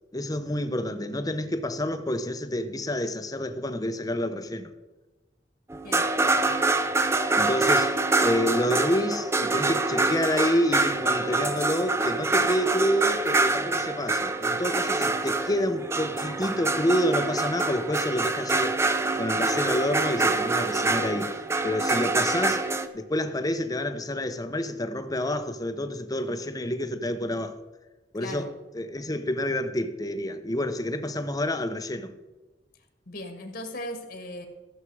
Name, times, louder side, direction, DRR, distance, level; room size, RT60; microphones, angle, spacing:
voice 1, 0.1-4.7 7.3-18.8 19.2-21.3 21.6-22.6 22.9-27.6 28.1-32.1, left 1 dB, 20° left, 0.9 m, -28 dB
sound 1, 5.7-22.9, right 3 dB, 15° right, 0.6 m, -25 dB
voice 2, 33.1-34.5, left 1 dB, 55° left, 1.7 m, -37 dB
14.5 x 7.5 x 4.8 m
head